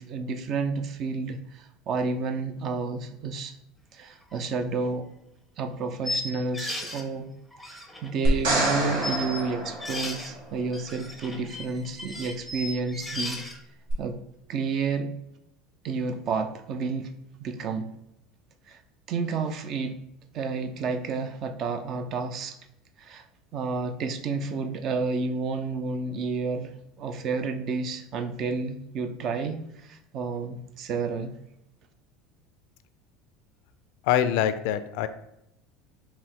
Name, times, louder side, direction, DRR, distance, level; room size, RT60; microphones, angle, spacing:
voice 1, 0.0-3.5 3.9-5.1 5.6-7.3 7.7-13.4 14.0-14.2 14.5-15.1 15.8-17.1 17.4-17.9 18.7-18.8 19.1-20.0 20.3-22.6 23.0-23.2 23.5-31.3, right 4 dB, 45° right, 8 dB, 0.5 m, -30 dB
sound 1, 4.3-4.4 4.8-4.9 6.0-7.0 7.5-8.7 9.0-10.3 10.7-13.6, left 1 dB, ahead, 0.6 m, -35 dB
sound 2, 8.2-10.5 13.9-14.0, right 1 dB, 80° right, 1.5 m, -27 dB
voice 2, 34.0-35.1, left 10 dB, 70° left, 12 dB, 0.3 m, -24 dB
4.5 x 2.8 x 3.6 m, 0.84 s
supercardioid pair, 140°, 0 cm